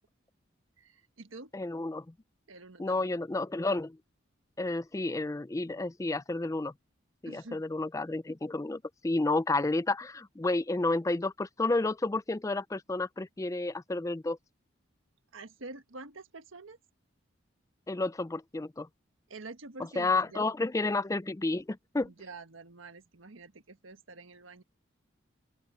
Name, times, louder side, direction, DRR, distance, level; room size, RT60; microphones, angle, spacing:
voice 1, 0.8-1.5 2.5-3.1 7.2-7.6 15.3-16.8 19.3-20.5 22.0-24.6, right 3 dB, 85° right, 1.4 m, -47 dB
voice 2, 1.5-2.1 2.8-4.0 4.6-6.7 7.2-14.4 17.9-18.9 20.0-22.1, left 2 dB, 15° left, 0.4 m, -31 dB
open air
head